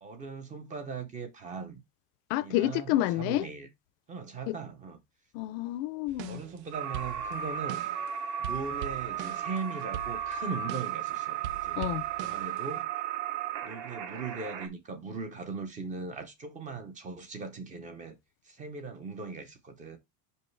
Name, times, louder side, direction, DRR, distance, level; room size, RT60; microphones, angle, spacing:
voice 1, 0.0-1.8 2.4-3.7 4.1-5.0 6.3-7.8 8.4-11.9 12.2-12.9 13.6-18.2 18.4-20.0, right 4 dB, 15° right, 0.5 m, -39 dB
voice 2, 2.3-3.5 4.5-4.6 5.3-6.4 11.8-12.0, left 15 dB, 50° left, 0.5 m, -29 dB
sound 1, 6.1-6.6 6.9-8.1 8.4-11.1 11.4-12.8, right 10 dB, 85° right, 0.9 m, -42 dB
sound 2, 6.7-14.7, right 9 dB, 35° right, 0.9 m, -35 dB
5.5 x 5.4 x 3.1 m
cardioid pair, 175°, 50 cm